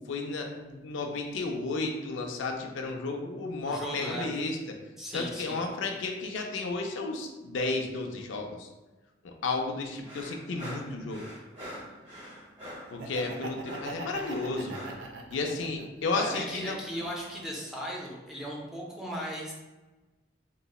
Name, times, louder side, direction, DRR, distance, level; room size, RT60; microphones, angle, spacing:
voice 1, 0.0-4.6 5.1-8.7 9.4-11.3 12.9-14.8 15.3-16.8, left 3 dB, 85° left, 3 dB, 0.4 m, -33 dB
voice 2, 3.7-4.3 5.0-5.6 16.1-19.5, equal, ahead, -4 dB, 0.5 m, -37 dB
sound 1, 10.0-15.1, equal, 35° right, 1.1 m, -44 dB
Laughter, 12.9-16.0 16.5-17.6, right 2 dB, 70° right, 0.3 m, -41 dB
3.8 x 2.0 x 2.3 m, 1.1 s
head